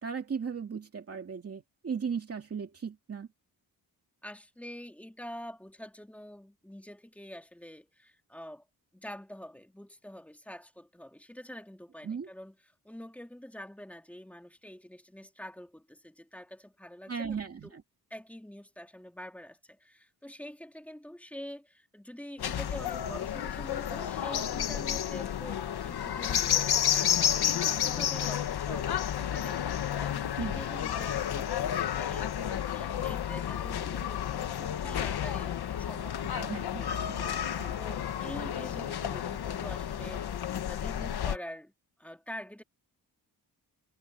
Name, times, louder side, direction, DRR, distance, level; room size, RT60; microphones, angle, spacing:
voice 1, 0.0-3.3 12.0-12.3 17.1-17.8 30.4-30.6 36.3-37.7, right 6 dB, 35° right, 2.4 m, -37 dB
voice 2, 4.2-8.6 8.9-12.6 12.8-17.7 18.1-41.7 42.0-42.6, equal, 5° left, 2.6 m, -46 dB
sound 1, 22.4-41.4, left 10 dB, 75° left, 1.4 m, -31 dB
wide cardioid pair, 165°, 39 cm